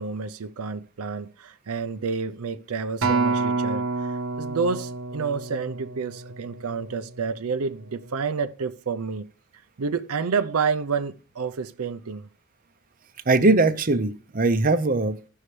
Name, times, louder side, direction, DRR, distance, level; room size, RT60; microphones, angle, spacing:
voice 1, 0.0-9.3 9.8-12.3, right 5 dB, 75° right, 0.6 m, -29 dB
Acoustic guitar, 3.0-7.4 8.1-8.2, right 3 dB, 60° right, 0.9 m, -28 dB
voice 2, 13.3-15.3, right 3 dB, 40° right, 0.7 m, -21 dB
16.0 x 5.6 x 3.3 m
head